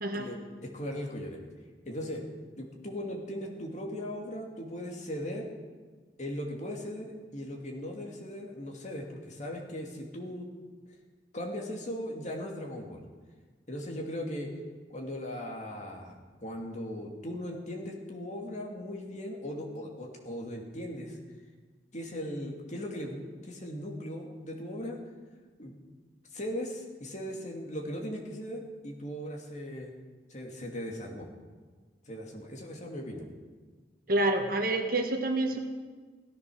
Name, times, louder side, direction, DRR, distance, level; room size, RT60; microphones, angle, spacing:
voice 1, 0.1-1.4 1.9-2.2 2.6-5.5 6.2-10.5 11.3-13.0 13.7-14.5 14.9-16.1 16.4-21.2 21.9-25.0 25.6-25.8 26.3-29.9 30.3-31.3 32.1-33.3, equal, 40° left, 0 dB, 2.5 m, -38 dB
voice 2, 34.1-35.6, right 2 dB, 55° right, 4 dB, 1.7 m, -28 dB
16.5 x 14.0 x 6.3 m, 1.4 s
head